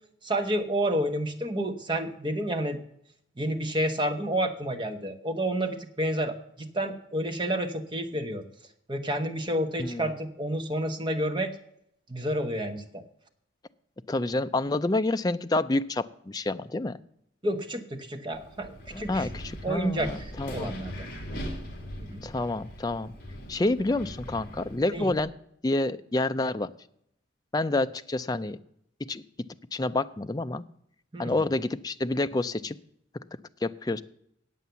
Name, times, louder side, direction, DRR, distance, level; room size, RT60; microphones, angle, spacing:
voice 1, 0.2-2.8 3.4-8.4 8.9-11.5 12.1-13.0 17.4-19.3 19.6-21.1 22.0-22.2 24.9-25.1 31.1-31.4, right 1 dB, 25° right, 5 dB, 1.1 m, -30 dB
voice 2, 14.1-17.0 18.9-20.7 22.2-23.1 23.5-25.3 25.6-26.7 27.5-28.6 29.0-29.2 29.7-30.6 31.2-32.8 33.6-34.0, left 2 dB, 20° left, 10 dB, 0.4 m, -28 dB
Wind, 18.3-25.2, equal, 45° left, 2.3 m, -40 dB
9.2 x 8.3 x 6.9 m, 0.71 s
head